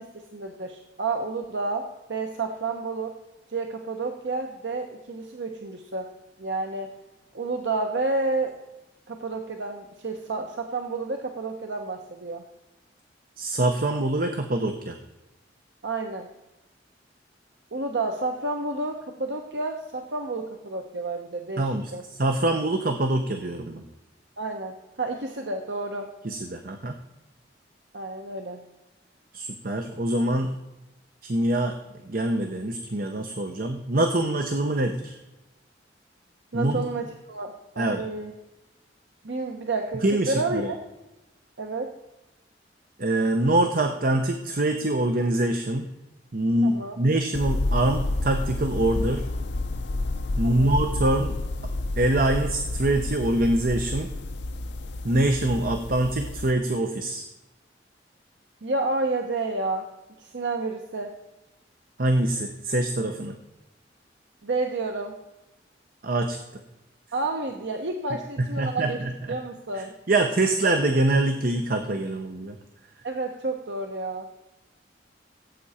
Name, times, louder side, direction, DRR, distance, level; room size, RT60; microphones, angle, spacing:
voice 1, 0.0-3.1 3.5-6.1 6.4-6.9 7.3-8.5 9.1-12.4 15.8-16.3 17.7-22.0 24.4-26.1 27.9-28.6 36.5-38.3 39.2-40.8 41.6-42.0 46.6-47.0 50.4-50.8 58.6-59.9 60.2-61.1 64.4-65.2 67.1-69.0 69.3-69.9 73.0-74.3, right 3 dB, 75° right, 3 dB, 1.0 m, -30 dB
voice 2, 13.4-15.0 21.6-23.8 26.2-27.0 29.3-30.5 31.2-31.8 32.1-35.2 36.5-36.8 37.8-38.1 40.0-40.7 43.0-45.9 46.3-49.2 50.4-51.4 52.0-54.1 55.0-57.3 62.0-63.3 66.0-66.4 68.6-69.1 70.1-72.6, right 1 dB, 55° right, 5 dB, 0.9 m, -24 dB
sound 1, 47.3-56.5, left 2 dB, 70° left, 0.7 m, -30 dB
16.5 x 8.2 x 4.3 m, 1.0 s
head